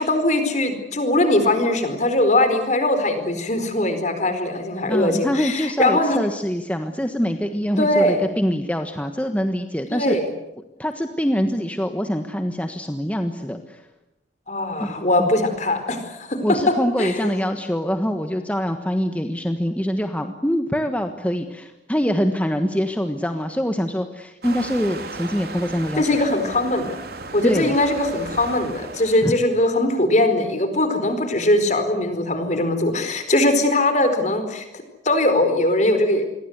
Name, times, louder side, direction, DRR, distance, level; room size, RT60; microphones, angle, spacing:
voice 1, 0.0-6.2 7.8-8.3 9.9-10.2 14.5-16.6 17.0-17.3 26.0-27.0 27.3-34.7 35.0-36.2, left 1 dB, 40° left, 8 dB, 4.5 m, -21 dB
voice 2, 4.9-10.2 10.8-13.9 14.8-15.3 16.4-26.1 27.4-27.8 29.2-29.3, equal, 10° left, 6 dB, 1.3 m, -24 dB
Waves surf, 24.4-29.5, right 3 dB, 55° right, 3.6 m, -36 dB
27.5 x 22.5 x 8.1 m, 0.94 s
head